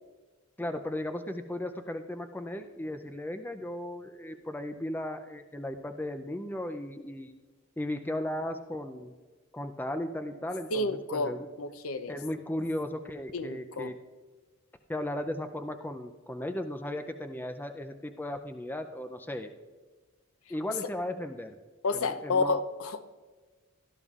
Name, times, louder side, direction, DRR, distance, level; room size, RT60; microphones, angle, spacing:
voice 1, 0.6-7.3 7.8-9.1 9.5-11.5 12.1-14.0 14.9-19.5 20.5-21.6 21.9-22.6, left 1 dB, 10° left, 6 dB, 0.4 m, -36 dB
voice 2, 10.7-12.1 13.3-13.9 21.8-23.0, left 3 dB, 80° left, 11 dB, 0.7 m, -30 dB
17.5 x 12.5 x 2.4 m, 1.4 s
head